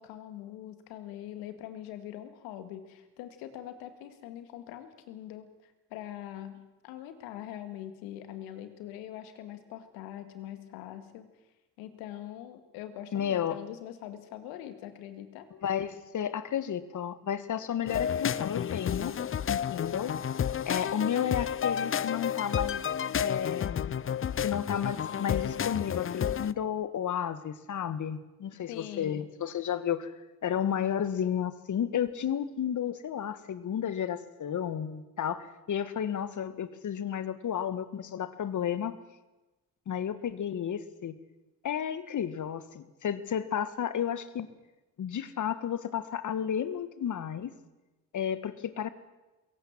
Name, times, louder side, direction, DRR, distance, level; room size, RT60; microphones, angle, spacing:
voice 1, 0.0-11.3 11.8-15.5 28.7-29.3, left 11 dB, 80° left, 10 dB, 2.1 m, -43 dB
voice 2, 13.1-13.6 15.6-19.2 19.5-20.2 20.7-22.8 23.2-24.0 24.4-30.1 30.4-39.0 39.9-41.1 41.6-44.5 45.0-47.5 48.1-48.9, left 9 dB, 55° left, 14 dB, 1.6 m, -32 dB
sound 1, 17.9-26.5, left 8 dB, 35° left, 0.7 m, -31 dB
22.0 x 17.5 x 7.5 m, 1.1 s
hypercardioid pair, 50°, 36 cm